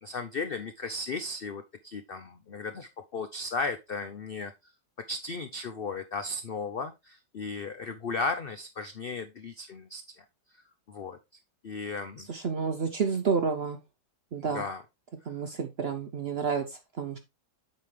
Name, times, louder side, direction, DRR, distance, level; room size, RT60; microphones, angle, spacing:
voice 1, 0.0-4.5 5.1-10.2 10.9-11.2 11.6-12.3 14.5-14.8, left 3 dB, 85° left, 8 dB, 0.5 m, -35 dB
voice 2, 12.3-13.8 14.3-14.6 15.3-17.2, right 5 dB, 55° right, 8 dB, 0.7 m, -30 dB
8.0 x 5.4 x 3.2 m, 0.23 s
omnidirectional pair, 1.9 m